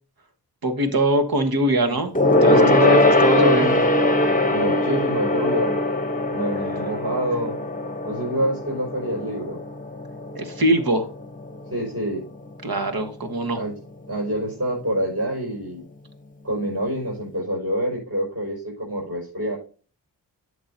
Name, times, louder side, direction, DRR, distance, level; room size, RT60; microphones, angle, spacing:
voice 1, 0.6-2.1 2.4-3.8 10.3-11.1 12.6-13.6, right 1 dB, 60° right, 6 dB, 1.5 m, -22 dB
Gong, 2.1-11.9 12.2-12.5 12.8-12.9, left 1 dB, 20° left, 0.9 m, -21 dB
voice 2, 2.4-3.8 4.5-5.8 6.3-7.6 8.0-9.6 11.7-12.2 13.5-13.7 14.1-15.8 16.4-19.6, equal, 40° right, -4 dB, 5.1 m, -26 dB
11.0 x 6.8 x 2.7 m, 0.38 s
cardioid pair, 45°, 40 cm